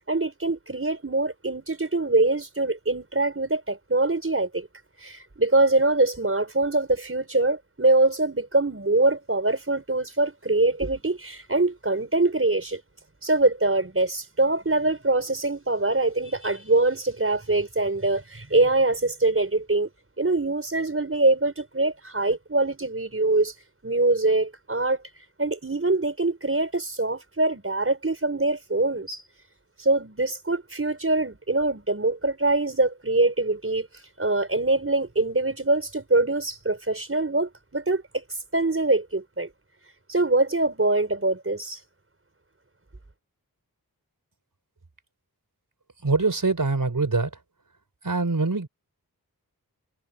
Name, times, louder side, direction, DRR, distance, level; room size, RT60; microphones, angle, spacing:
voice 1, 0.1-4.7 5.0-12.8 13.2-19.9 20.2-23.5 23.8-25.0 25.4-29.2 29.8-33.9 34.2-38.2 38.5-39.5 40.1-41.8, right 2 dB, 35° right, 5.4 m, -23 dB
voice 2, 46.0-47.4 48.0-48.7, right 3 dB, 60° right, 5.2 m, -24 dB
wide cardioid pair, 60°, 37 cm